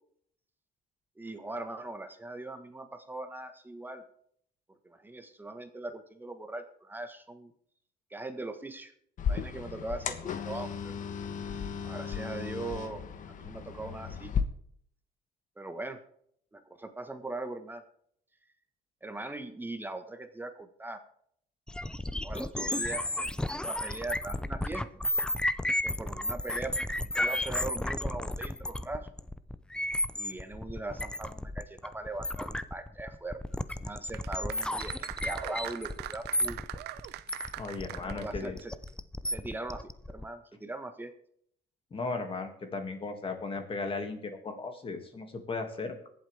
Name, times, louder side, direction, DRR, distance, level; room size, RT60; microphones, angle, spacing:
voice 1, 1.2-4.0 4.8-7.5 8.1-8.9 9.3-11.0 11.8-14.3 15.6-16.0 16.5-17.8 19.0-21.0 22.2-24.8 25.8-29.1 30.2-33.4 33.8-36.6 38.0-38.7 39.3-41.1, right 2 dB, 10° right, 7 dB, 1.4 m, -40 dB
sound 1, 9.2-14.4, left 7 dB, 50° left, 1.2 m, -35 dB
sound 2, 21.7-40.2, left 1 dB, 5° left, 0.5 m, -33 dB
sound 3, 34.1-38.6 38.9-39.0, right 15 dB, 80° right, 0.6 m, -41 dB
voice 2, 37.6-38.6 41.9-46.0, left 3 dB, 30° left, 5 dB, 2.3 m, -36 dB
23.0 x 7.8 x 3.5 m, 0.66 s
cardioid pair, 110°, 17 cm